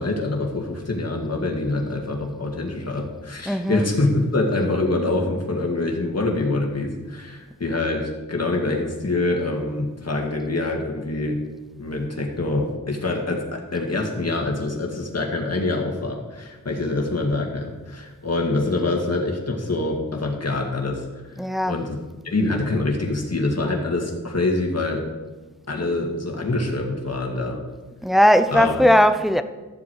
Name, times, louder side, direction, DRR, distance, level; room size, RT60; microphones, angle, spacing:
voice 1, 0.0-11.4 11.8-21.0 21.7-21.9 22.3-25.1 25.7-27.6 28.5-28.7, left 2 dB, 45° left, 2.0 m, -25 dB
voice 2, 3.5-3.9 21.4-21.8 28.0-29.4, equal, ahead, 0.6 m, -18 dB
13.0 x 7.4 x 4.7 m
wide cardioid pair, 60°, 35 cm